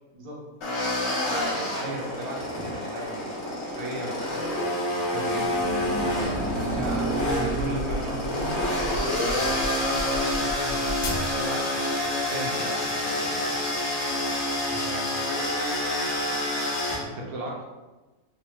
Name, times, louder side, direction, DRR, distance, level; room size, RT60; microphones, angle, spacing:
sound 1, 0.6-17.0, left 1 dB, 55° left, 0.9 m, -28 dB
voice 1, 1.5-5.7 6.5-8.2 11.3-13.6 16.9-17.6, right 2 dB, 75° right, -1 dB, 1.1 m, -37 dB
sound 2, 5.1-9.7, right 2 dB, 30° right, 0.9 m, -32 dB
voice 2, 6.2-7.8 9.3-10.8 14.7-15.1, right 1 dB, 45° right, -4 dB, 0.5 m, -40 dB
sound 3, 7.6-11.7, left 1 dB, 70° left, 0.6 m, -36 dB
3.0 x 2.1 x 3.0 m, 1.2 s
omnidirectional pair, 1.6 m